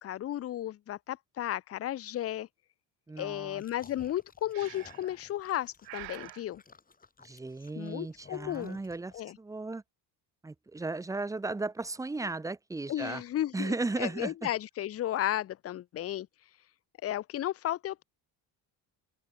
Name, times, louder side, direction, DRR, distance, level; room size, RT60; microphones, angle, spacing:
voice 1, 0.0-2.5 3.2-6.6 7.8-8.8 9.1-9.4 12.9-16.3 17.0-18.0, left 12 dB, 35° left, 0.6 m, -34 dB
voice 2, 3.1-3.6 7.2-9.8 10.4-13.2 13.5-14.5, right 3 dB, 10° right, 0.8 m, -35 dB
sound 1, 3.5-9.2, left 4 dB, 20° left, 6.2 m, -56 dB
Breathing, 4.5-5.2 5.8-6.4, right 21 dB, 65° right, 0.5 m, -45 dB
open air
cardioid pair, 145°, 40 cm